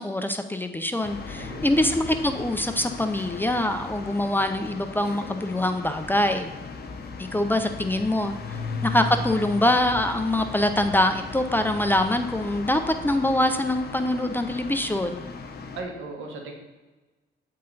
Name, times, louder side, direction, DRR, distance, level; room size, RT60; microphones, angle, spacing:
voice 1, 0.0-6.5 7.2-15.2, left 1 dB, 10° left, 7 dB, 0.4 m, -24 dB
sound 1, 1.0-15.8, left 4 dB, 50° left, 0.9 m, -37 dB
voice 2, 1.4-2.0 8.5-8.8 15.7-16.5, right 3 dB, 80° right, 1 dB, 1.4 m, -38 dB
8.7 x 3.8 x 4.0 m, 1.2 s
cardioid pair, 90°, 20 cm